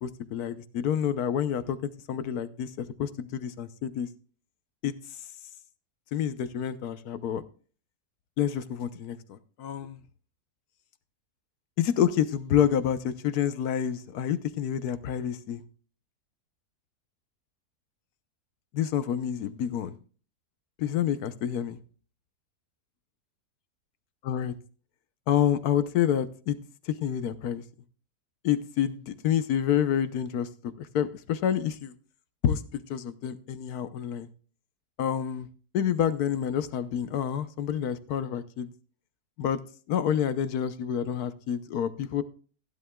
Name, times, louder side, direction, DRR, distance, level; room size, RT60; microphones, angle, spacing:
voice 1, 0.0-4.1 4.8-4.9 6.1-7.4 8.4-10.0 11.8-15.6 18.7-20.0 20.8-21.8 24.2-24.5 25.3-26.6 26.9-27.6 28.4-30.5 30.8-31.9 32.4-34.3 35.0-35.5 35.7-38.7 39.4-39.6 39.9-42.2, left 9 dB, 75° left, 13 dB, 1.3 m, -28 dB
16.0 x 11.0 x 2.3 m, 0.41 s
omnidirectional pair, 1.7 m